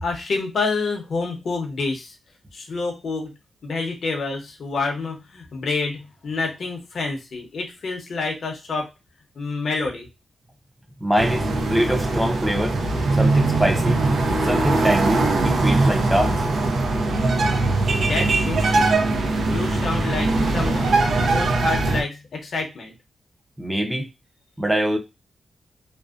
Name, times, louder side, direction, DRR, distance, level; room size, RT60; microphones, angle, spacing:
voice 1, 0.0-2.2 2.5-3.3 3.6-8.9 9.4-10.1 17.9-18.9 19.4-21.0 21.3-22.9, left 3 dB, 60° left, 0.7 m, -28 dB
voice 2, 11.0-12.8 13.1-14.0 14.4-16.4 23.6-24.1 24.6-25.0, equal, 5° right, 0.5 m, -23 dB
sound 1, 11.2-22.0, right 2 dB, 75° right, 0.5 m, -21 dB
2.5 x 2.1 x 2.3 m
wide cardioid pair, 100°, 0 cm